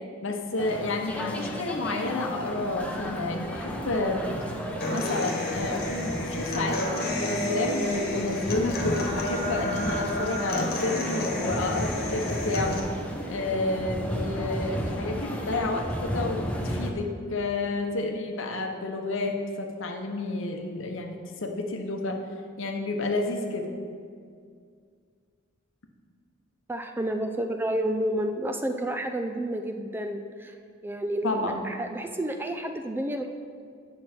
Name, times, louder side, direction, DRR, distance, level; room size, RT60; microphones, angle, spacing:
voice 1, 0.2-4.5 4.9-12.8 13.3-22.2 22.6-23.7 31.2-31.6, left 2 dB, 65° left, 4 dB, 0.8 m, -30 dB
sound 1, 0.6-16.9, equal, 5° left, 0.7 m, -34 dB
Human voice / Acoustic guitar, 4.8-12.8, left 1 dB, 50° left, 1.3 m, -31 dB
voice 2, 26.7-30.6 30.8-33.3, right 1 dB, 10° right, 5 dB, 0.3 m, -30 dB
9.4 x 6.1 x 4.4 m, 2.2 s
head